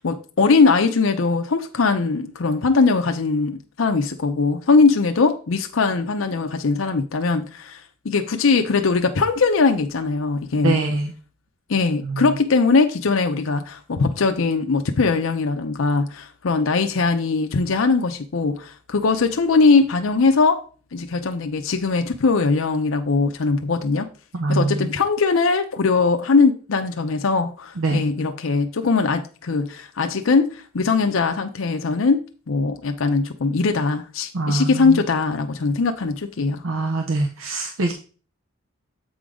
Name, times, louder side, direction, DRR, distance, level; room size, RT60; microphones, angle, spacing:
voice 1, 0.0-10.8 11.7-20.6 20.9-24.1 24.5-36.6, left 4 dB, 75° left, 0.6 m, -20 dB
voice 2, 10.6-11.1 12.0-12.3 24.3-24.9 27.8-28.0 34.3-35.0 36.6-37.9, right 2 dB, 80° right, 0.7 m, -23 dB
7.8 x 3.8 x 4.9 m
head